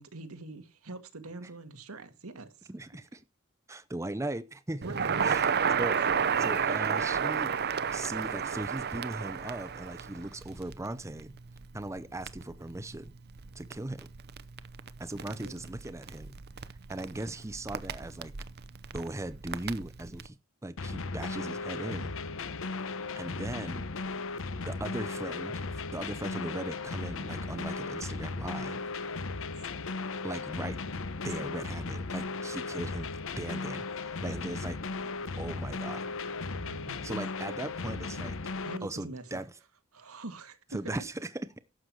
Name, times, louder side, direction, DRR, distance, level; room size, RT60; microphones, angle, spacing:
voice 1, 0.0-2.7 4.8-5.1 15.2-15.7 31.4-31.6 36.5-37.0 38.6-39.4 39.9-41.0, right 2 dB, 90° right, 1.9 m, -44 dB
voice 2, 2.7-3.2 3.7-4.9 5.2-5.5 5.8-6.0 6.3-7.5 7.9-11.3 11.7-13.2 13.5-14.1 15.0-16.3 16.9-18.3 18.9-20.4 20.6-22.1 23.2-23.9 24.6-25.6 25.9-28.8 30.2-30.8 31.2-34.8 35.4-36.1 37.0-38.4 38.8-39.5 40.7-41.6, right 1 dB, 15° right, 0.6 m, -38 dB
Crackle, 4.8-20.3, right 7 dB, 50° right, 0.7 m, -33 dB
sound 1, 20.8-38.8, left 3 dB, 65° left, 0.9 m, -36 dB
11.5 x 7.8 x 4.7 m
head